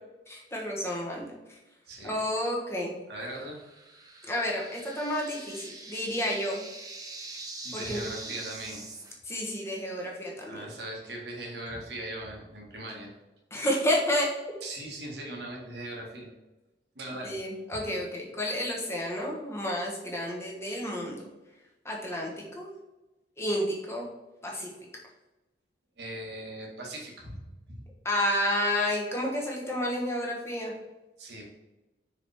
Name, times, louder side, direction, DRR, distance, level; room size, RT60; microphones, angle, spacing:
voice 1, 0.3-1.6 2.0-2.9 4.2-6.6 7.7-8.0 9.2-10.6 13.5-14.3 17.2-21.2 21.8-22.7 23.4-24.1 24.4-24.7 28.0-30.7, left 1 dB, 15° left, -2 dB, 1.2 m, -30 dB
voice 2, 3.1-3.6 7.6-8.8 10.4-13.1 14.6-16.3 16.9-17.4 17.7-17.8 26.0-27.8 31.2-31.5, right 1 dB, 65° right, -1 dB, 1.7 m, -39 dB
sound 1, 3.3-9.1, right 3 dB, 20° right, 0.8 m, -43 dB
5.8 x 4.9 x 3.5 m, 1.1 s
head